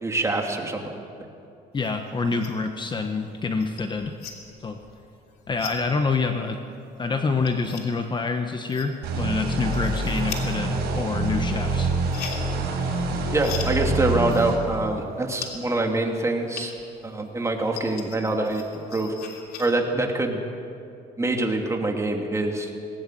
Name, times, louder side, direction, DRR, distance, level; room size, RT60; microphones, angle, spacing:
voice 1, 0.0-0.9 13.3-16.7 17.0-18.7 18.9-19.1 19.6-20.4 21.2-22.7, right 2 dB, 15° right, 2 dB, 2.7 m, -25 dB
voice 2, 1.7-4.1 4.6-4.8 5.5-6.6 7.0-11.9, left 4 dB, 25° left, 6 dB, 1.1 m, -26 dB
sound 1, 1.8-2.7 3.1-17.0 17.3-19.7, left 6 dB, 75° left, 3.1 m, -41 dB
sound 2, 9.0-14.5, right 3 dB, 70° right, 5.8 m, -26 dB
19.5 x 18.5 x 7.6 m, 2.6 s
cardioid pair, 110°, 17 cm